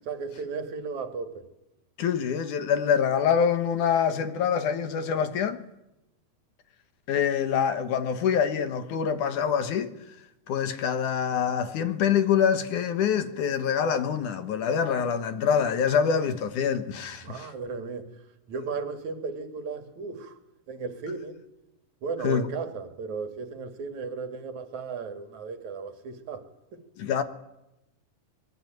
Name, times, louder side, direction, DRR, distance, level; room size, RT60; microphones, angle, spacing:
voice 1, 0.0-1.4 17.2-18.2 18.5-20.4 20.7-21.4 22.0-26.8, right 5 dB, 50° right, 3.4 m, -35 dB
voice 2, 2.0-5.6 7.1-9.9 10.5-17.5 22.2-22.5 27.0-27.2, left 7 dB, 60° left, 2.6 m, -25 dB
25.0 x 21.5 x 9.2 m
omnidirectional pair, 4.6 m